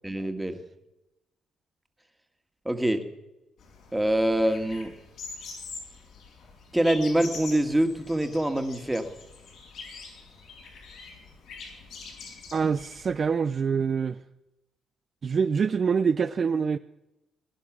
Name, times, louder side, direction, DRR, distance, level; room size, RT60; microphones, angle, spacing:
voice 1, 0.0-0.6 2.6-3.0 3.9-4.9 6.7-9.1, right 1 dB, 10° right, 1.7 m, -25 dB
sound 1, 3.6-13.3, left 4 dB, 80° left, 5.1 m, -44 dB
voice 2, 12.5-14.2 15.2-16.8, right 6 dB, 45° right, 0.5 m, -25 dB
20.0 x 11.0 x 6.1 m
cardioid pair, 90°, 0 cm